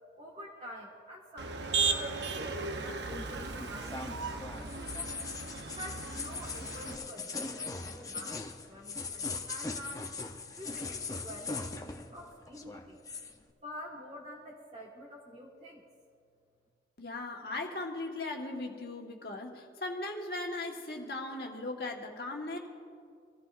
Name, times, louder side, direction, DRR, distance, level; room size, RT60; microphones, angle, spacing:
voice 1, 0.1-2.6 2.8-5.2 5.7-10.1 10.6-13.0 13.6-15.8, equal, 35° right, -4 dB, 1.6 m, -48 dB
Motor vehicle (road), 1.4-7.0, right 4 dB, 85° right, 0.8 m, -36 dB
sound 1, 3.1-12.2 12.5-13.3, left 4 dB, 20° left, 0.7 m, -40 dB
voice 2, 17.0-22.6, left 2 dB, 60° left, 0 dB, 1.6 m, -38 dB
24.0 x 15.0 x 2.5 m, 2.3 s
head